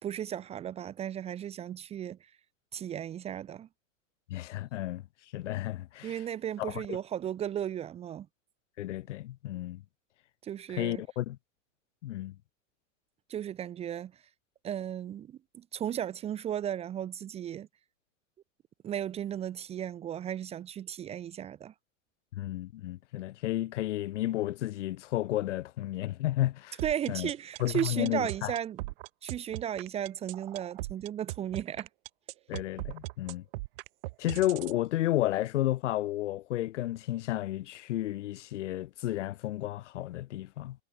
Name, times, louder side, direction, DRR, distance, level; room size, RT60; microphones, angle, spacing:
voice 1, 0.0-2.2 2.7-3.7 6.0-8.3 10.4-11.0 13.3-14.1 14.6-17.7 18.8-21.7 26.8-28.8 29.2-31.9, right 10 dB, 15° right, 1.4 m, -35 dB
voice 2, 4.3-5.0 5.3-6.2 6.6-7.0 8.8-9.8 10.7-11.4 12.0-12.3 22.3-26.8 27.1-27.3 27.6-28.5 32.5-33.4 34.2-40.8, left 14 dB, 60° left, 5.1 m, -32 dB
sound 1, 26.8-34.8, right 20 dB, 45° right, 1.7 m, -39 dB
supercardioid pair, 170°, 40 cm